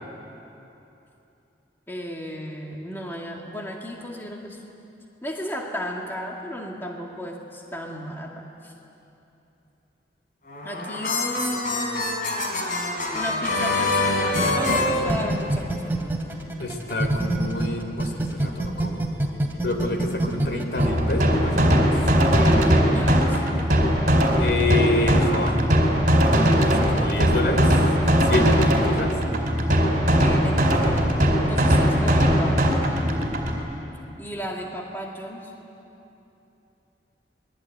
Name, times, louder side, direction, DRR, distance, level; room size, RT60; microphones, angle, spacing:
voice 1, 1.9-4.6 5.2-8.7 10.6-12.2 13.1-16.1 22.3-23.4 30.2-32.7 34.2-35.5, equal, 15° left, -1 dB, 2.3 m, -34 dB
sound 1, 10.5-15.8, left 2 dB, 50° left, 3.9 m, -25 dB
sound 2, 15.1-17.7 18.0-20.9, right 1 dB, 10° right, 2.9 m, -24 dB
voice 2, 16.6-19.0 19.6-21.9 24.4-25.6 26.6-27.7 28.2-29.2, left 2 dB, 70° left, 5 dB, 3.4 m, -27 dB
sound 3, 20.8-33.6, equal, 45° right, 4.6 m, -20 dB
27.0 x 21.5 x 9.4 m, 2.9 s
head